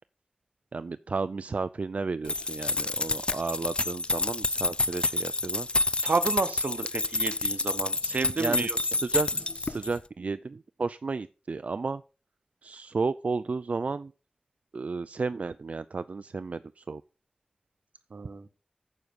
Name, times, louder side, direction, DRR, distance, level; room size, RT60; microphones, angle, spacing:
voice 1, 0.7-5.7 8.3-12.0 12.6-14.1 14.7-17.0, right 4 dB, 70° right, 13 dB, 0.4 m, -33 dB
sound 1, 2.2-10.0, left 2 dB, 45° left, 0.5 m, -29 dB
voice 2, 6.0-8.8 18.1-18.5, right 4 dB, 85° right, 12 dB, 0.9 m, -30 dB
9.4 x 6.4 x 5.3 m, 0.35 s
wide cardioid pair, 75°, 2 cm